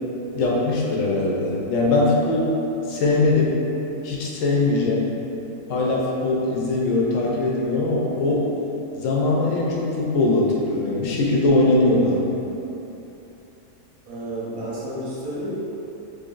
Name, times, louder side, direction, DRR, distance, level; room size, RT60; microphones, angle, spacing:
voice 1, 0.3-2.5 2.9-3.6 4.0-5.1 5.7-8.5 8.9-12.4, left 2 dB, 70° left, -4 dB, 0.9 m, -21 dB
voice 2, 14.1-15.5, right 1 dB, 85° right, -7 dB, 1.3 m, -31 dB
3.9 x 3.1 x 2.4 m, 3.0 s
omnidirectional pair, 1.5 m